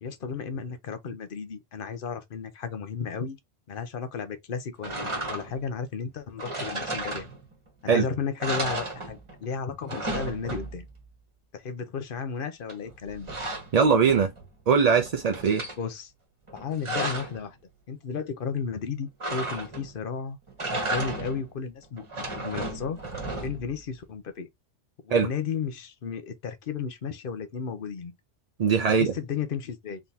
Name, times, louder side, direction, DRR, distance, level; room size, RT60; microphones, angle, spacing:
voice 1, 0.0-3.4 3.7-7.3 7.8-10.9 11.5-13.3 15.8-16.1 16.5-17.6 17.9-20.4 20.8-23.0 23.4-24.5 25.0-28.1 29.0-30.0, left 6 dB, 50° left, 0.9 m, -33 dB
sound 1, 4.8-5.7 6.4-7.7 8.0-8.1 8.4-9.5 9.7-11.0 12.7-14.5 14.9-15.8 16.5-17.4 19.2-20.0 20.5-21.5 22.0-23.8, right 2 dB, 25° right, 1.3 m, -34 dB
voice 2, 13.7-14.3 14.7-15.6 25.1-25.3 28.6-29.1, right 6 dB, 50° right, 0.5 m, -21 dB
3.9 x 3.7 x 2.8 m
omnidirectional pair, 1.3 m